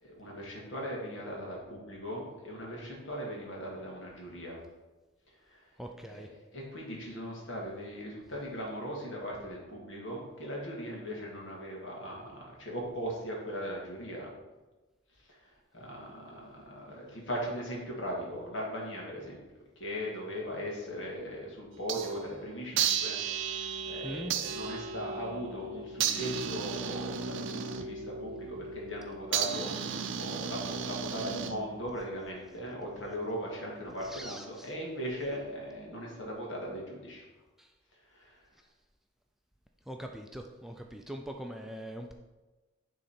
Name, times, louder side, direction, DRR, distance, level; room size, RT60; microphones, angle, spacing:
voice 1, 0.0-4.6 5.5-5.6 6.1-6.2 6.5-14.3 15.3-15.4 15.7-19.4 19.8-37.2 38.1-38.4, equal, 75° left, -2 dB, 2.1 m, -39 dB
voice 2, 5.8-6.3 24.0-24.3 34.0-34.7 37.6-37.7 39.9-42.1, equal, ahead, 3 dB, 0.4 m, -42 dB
sound 1, 21.7-22.3 22.8-31.9, right 7 dB, 75° right, 0.5 m, -34 dB
9.4 x 3.9 x 4.3 m, 1.2 s
head